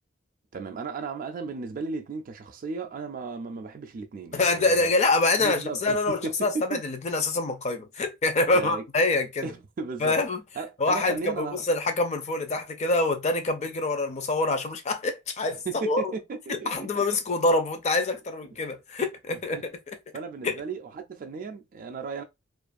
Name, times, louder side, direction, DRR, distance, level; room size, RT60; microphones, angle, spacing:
voice 1, 0.5-4.9 5.4-6.8 8.5-8.8 9.4-10.2 10.6-11.6 15.7-17.0 19.3-19.7 20.1-22.2, right 4 dB, 45° right, 0.4 m, -35 dB
voice 2, 4.3-9.5 10.0-10.4 10.8-16.1 16.5-19.7 20.4-20.6, left 2 dB, 35° left, 0.5 m, -25 dB
2.5 x 2.3 x 2.4 m
head